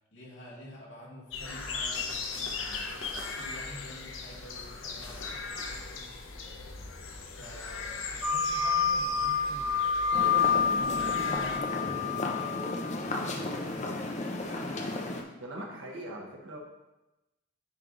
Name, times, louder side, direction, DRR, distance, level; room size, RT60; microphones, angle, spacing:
voice 1, 0.1-6.5 7.4-10.1 10.6-14.2, equal, 65° left, -5 dB, 2.1 m, -48 dB
sound 1, 1.3-11.6, left 4 dB, 85° left, 0.8 m, -38 dB
sound 2, 8.2-13.0, left 6 dB, 5° right, 0.4 m, -28 dB
sound 3, 10.1-15.2, left 2 dB, 35° left, 0.7 m, -34 dB
voice 2, 15.4-16.6, right 1 dB, 80° right, -1 dB, 1.3 m, -41 dB
9.7 x 3.4 x 3.9 m, 1.0 s
head